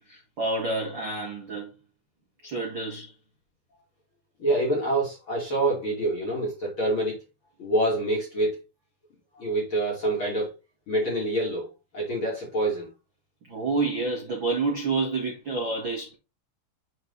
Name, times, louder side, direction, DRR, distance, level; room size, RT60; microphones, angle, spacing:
voice 1, 0.0-1.7 2.4-3.1 13.4-16.2, right 3 dB, 45° right, 1.5 m, -29 dB
voice 2, 4.4-7.2 7.6-8.6 9.4-10.5 10.9-11.7 11.9-12.9, right 1 dB, 35° left, 2.3 m, -26 dB
7.9 x 4.9 x 4.0 m
omnidirectional pair, 5.5 m